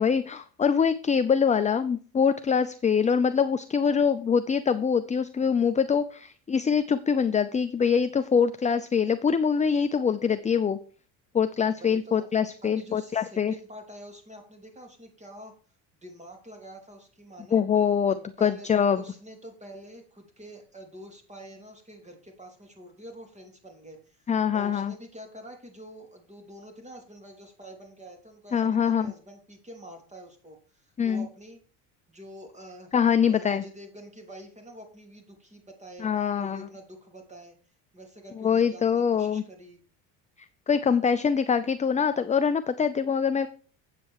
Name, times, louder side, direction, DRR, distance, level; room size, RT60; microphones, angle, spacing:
voice 1, 0.0-10.8 11.3-13.5 17.5-19.0 24.3-24.9 28.5-29.1 31.0-31.3 32.9-33.6 36.0-36.6 38.4-39.4 40.7-43.5, left 6 dB, 15° left, 11 dB, 0.5 m, -24 dB
voice 2, 11.7-12.2 12.6-15.5 15.9-17.6 18.1-18.7 18.9-31.6 32.1-37.5 37.9-39.8, equal, 15° right, 4 dB, 3.2 m, -47 dB
8.3 x 7.6 x 4.7 m, 0.41 s
supercardioid pair, 90°, 43 cm